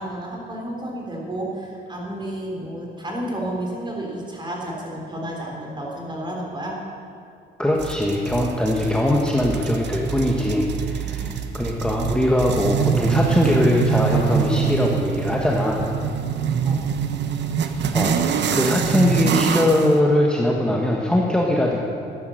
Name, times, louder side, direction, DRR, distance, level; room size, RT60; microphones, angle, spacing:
voice 1, 0.0-6.8 10.9-11.3 16.6-16.8, right 1 dB, 25° right, -1 dB, 3.9 m, -31 dB
voice 2, 7.6-15.9 17.9-21.8, left 1 dB, 5° left, -2 dB, 1.3 m, -21 dB
sound 1, 7.8-19.9, right 7 dB, 60° right, 0.9 m, -24 dB
13.0 x 9.8 x 6.6 m, 2.5 s
cardioid pair, 90°, 20 cm